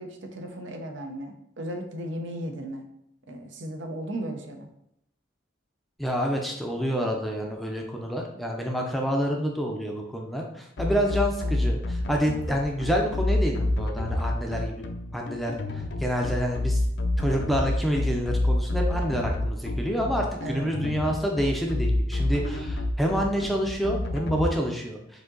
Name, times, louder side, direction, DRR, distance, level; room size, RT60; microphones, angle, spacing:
voice 1, 0.0-2.9 3.3-4.7 10.9-11.2 20.4-20.7, right 1 dB, 70° right, 4 dB, 0.7 m, -36 dB
voice 2, 6.0-14.8 15.1-16.8 17.2-25.0, equal, ahead, 0 dB, 0.5 m, -28 dB
sound 1, 10.8-24.5, left 2 dB, 55° left, 0.5 m, -28 dB
5.0 x 2.8 x 3.8 m, 0.76 s
head